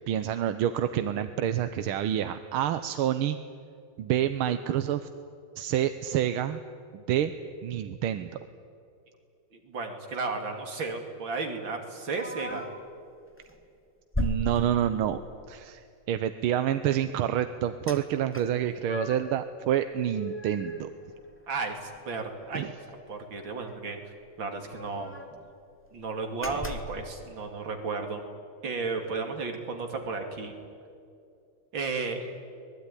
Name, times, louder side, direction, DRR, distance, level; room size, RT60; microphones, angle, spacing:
voice 1, 0.1-3.4 4.0-5.1 5.6-6.6 6.9-7.3 7.6-8.3 14.2-15.2 15.5-20.9 22.5-22.7 26.5-26.6, right 10 dB, 85° right, 10 dB, 1.7 m, -28 dB
voice 2, 9.5-12.6 21.5-24.0 24.4-25.2 25.9-28.2 28.6-30.5 31.7-32.3, right 4 dB, 65° right, 4 dB, 3.3 m, -34 dB
sound 1, 12.2-12.9 13.4-13.6 14.1-15.3 17.9-18.0 18.3-19.4 19.8-21.6 21.9-22.0 22.4-22.6 23.7-23.8 24.0-24.1 24.5-25.4 25.9-26.0 26.4-27.0, left 1 dB, 5° left, 1.5 m, -36 dB
25.5 x 20.0 x 9.9 m, 2.4 s
omnidirectional pair, 2.3 m